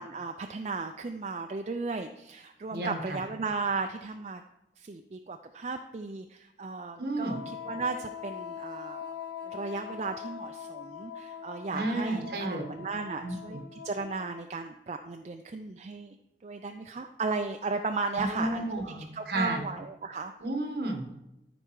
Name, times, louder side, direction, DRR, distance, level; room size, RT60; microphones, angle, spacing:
voice 1, 0.0-4.4 4.8-9.0 9.4-16.2 16.4-18.6 19.1-20.3 20.8-20.9, right 4 dB, 40° right, 6 dB, 0.4 m, -35 dB
voice 2, 2.7-3.2 7.0-7.4 11.7-12.6 13.2-13.6 18.2-19.6 20.4-21.2, right 1 dB, 60° right, 3 dB, 1.5 m, -32 dB
Wind instrument woodwind instrument, 7.2-14.6, left 8 dB, 80° left, 0.8 m, -43 dB
13.0 x 4.5 x 4.7 m, 0.87 s
head